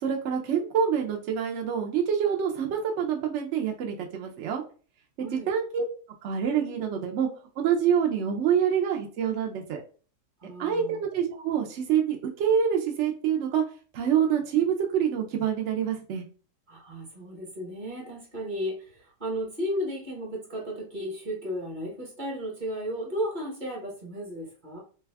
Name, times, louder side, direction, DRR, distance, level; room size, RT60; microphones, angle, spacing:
voice 1, 0.0-4.6 5.2-5.8 6.2-7.3 7.6-9.8 10.6-13.6 13.9-16.2, right 8 dB, 70° right, 1 dB, 0.7 m, -26 dB
voice 2, 10.4-11.0 16.7-24.8, equal, 35° right, -2 dB, 1.0 m, -34 dB
3.3 x 2.3 x 3.3 m, 0.38 s
omnidirectional pair, 1.7 m